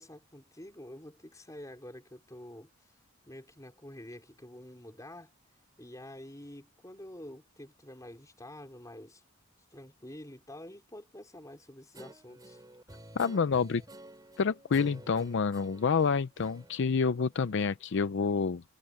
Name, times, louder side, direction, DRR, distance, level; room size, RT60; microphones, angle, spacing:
voice 1, 0.0-2.7 3.3-5.3 5.8-9.2 9.7-12.6, left 1 dB, 15° left, 4.5 m, -48 dB
Guitar, 11.9-17.8, right 1 dB, 20° right, 2.9 m, -52 dB
voice 2, 13.2-13.8 14.4-18.6, left 5 dB, 60° left, 0.5 m, -28 dB
head